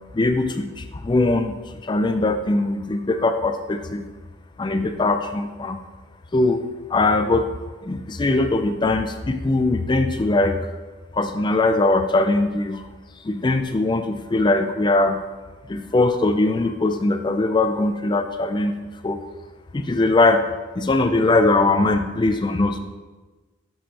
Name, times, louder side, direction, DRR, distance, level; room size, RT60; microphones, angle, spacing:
voice 1, 0.1-1.6 1.8-4.1 4.6-5.8 6.3-6.6 6.9-7.5 7.9-10.6 11.1-12.8 13.3-15.2 15.7-18.7 19.0-19.2 19.7-20.4 20.8-22.8, left 2 dB, 20° left, 8 dB, 0.3 m, -21 dB
11.5 x 7.1 x 2.9 m, 1.3 s
head